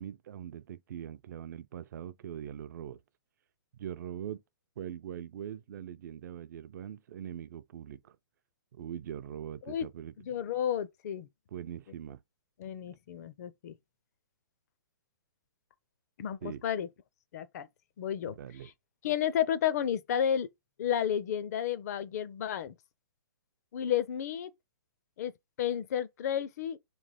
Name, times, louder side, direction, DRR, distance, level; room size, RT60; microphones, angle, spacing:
voice 1, 0.0-3.0 3.8-4.4 4.8-8.2 8.7-10.1 11.5-12.2 16.4-16.6 18.2-18.7, right 10 dB, 55° right, 0.4 m, -42 dB
voice 2, 10.2-11.3 12.6-13.7 16.2-16.9 17.3-17.7 18.0-18.3 19.0-20.5 20.8-22.7 23.7-24.5 25.2-25.3 25.6-26.8, left 9 dB, 45° left, 0.5 m, -31 dB
3.2 x 2.9 x 4.1 m
hypercardioid pair, 150°, 12 cm